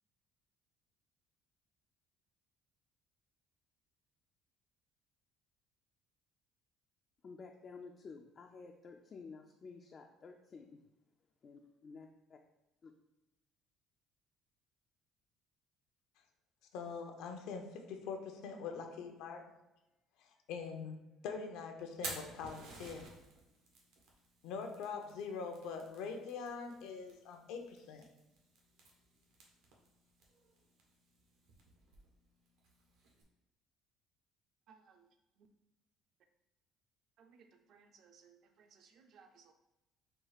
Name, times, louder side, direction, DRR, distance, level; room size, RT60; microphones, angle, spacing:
voice 1, 7.2-10.8 11.4-12.4 12.8-12.9, left 4 dB, 30° left, 3 dB, 0.3 m, -52 dB
voice 2, 16.7-19.4 20.2-21.0 21.2-23.1 24.4-28.0, left 5 dB, 75° left, 4 dB, 0.7 m, -43 dB
Fire, 21.8-33.2, right 3 dB, 85° right, 1.2 m, -53 dB
voice 3, 34.7-35.1 37.2-39.5, right 6 dB, 50° right, 6 dB, 0.5 m, -63 dB
4.5 x 2.4 x 4.8 m, 1.0 s
cardioid pair, 145°, 0 cm